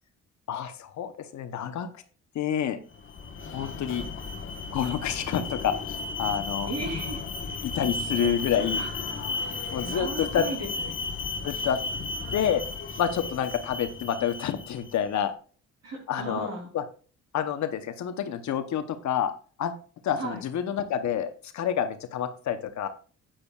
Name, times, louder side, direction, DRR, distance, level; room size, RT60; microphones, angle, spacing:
voice 1, 0.5-1.9 2.3-2.8 3.5-4.1 4.7-6.7 7.6-8.8 9.7-10.4 11.4-11.8 12.3-12.6 13.0-15.3 16.1-16.8 17.3-19.3 19.6-19.8 20.0-22.9, left 9 dB, 70° left, 9 dB, 1.0 m, -28 dB
Alarm, 2.9-15.0, left 3 dB, 40° left, 1.4 m, -34 dB
voice 2, 6.7-7.7 8.0-8.3 8.7-9.1 9.8-10.9 15.8-16.7 20.2-20.4, right 2 dB, 55° right, 0 dB, 3.5 m, -37 dB
9.7 x 8.9 x 2.4 m, 0.38 s
cardioid pair, 90°, 30 cm